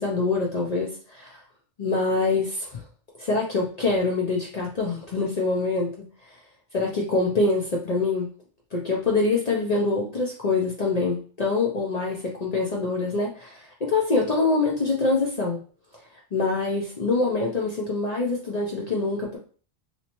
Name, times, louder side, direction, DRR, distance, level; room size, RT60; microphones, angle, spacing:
voice 1, 0.0-1.4 1.8-2.8 3.2-5.9 6.7-8.3 8.7-15.6 16.3-19.4, left 3 dB, 45° left, -2 dB, 0.7 m, -25 dB
3.1 x 2.9 x 2.9 m, 0.40 s
omnidirectional pair, 1.0 m